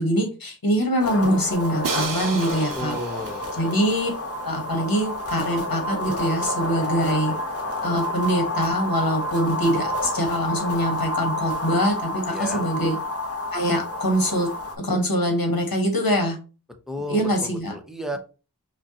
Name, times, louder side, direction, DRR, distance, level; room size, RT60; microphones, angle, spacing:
voice 1, 0.0-2.9 3.6-4.1 4.4-7.3 7.8-13.0 13.5-14.5 14.8-16.4 17.1-17.7, equal, 70° left, 3 dB, 1.2 m, -24 dB
sound 1, 1.0-14.8, left 1 dB, 40° left, 0.9 m, -29 dB
Crash cymbal, 1.8-3.8, right 5 dB, 60° right, 0.5 m, -33 dB
voice 2, 2.8-3.6 12.3-12.7 16.9-18.2, equal, ahead, 5 dB, 0.7 m, -33 dB
5.1 x 2.2 x 2.9 m, 0.33 s
wide cardioid pair, 45°, 36 cm